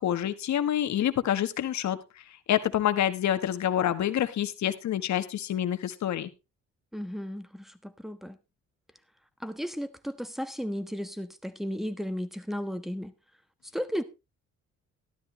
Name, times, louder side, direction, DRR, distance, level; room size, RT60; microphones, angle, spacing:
voice 1, 0.0-2.0 2.5-6.3, left 11 dB, 65° left, 1.3 m, -27 dB
voice 2, 6.9-8.4 9.4-13.1 13.7-14.0, equal, ahead, 1.3 m, -34 dB
13.0 x 12.0 x 3.2 m
cardioid pair, 90°, 30 cm